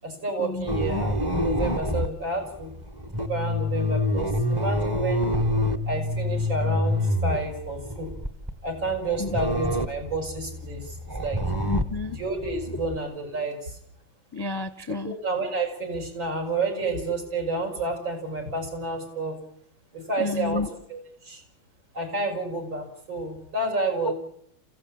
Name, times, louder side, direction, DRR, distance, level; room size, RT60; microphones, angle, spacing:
voice 1, 0.0-2.7 3.2-5.3 5.9-8.1 8.6-11.4 12.1-13.7 15.0-19.3 19.9-21.4 21.9-24.1, right 2 dB, 80° right, 0 dB, 6.9 m, -30 dB
sound 1, 0.7-13.0, left 1 dB, 15° right, 0.8 m, -27 dB
voice 2, 11.7-12.2 14.3-15.1 20.2-20.7 24.1-24.2, left 3 dB, 20° left, 12 dB, 0.7 m, -30 dB
27.5 x 16.5 x 8.7 m, 0.70 s
omnidirectional pair, 2.1 m